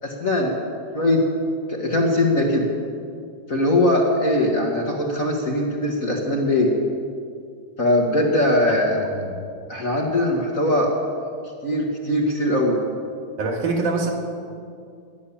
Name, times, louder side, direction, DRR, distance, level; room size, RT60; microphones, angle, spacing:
voice 1, 0.0-0.5 0.9-1.2 1.7-2.7 3.5-6.7 7.8-9.0 9.7-10.9 11.6-12.8, left 1 dB, 35° left, -1 dB, 1.7 m, -21 dB
voice 2, 13.4-14.1, right 3 dB, 90° right, 1 dB, 3.5 m, -24 dB
18.5 x 11.0 x 7.2 m, 2.3 s
omnidirectional pair, 3.4 m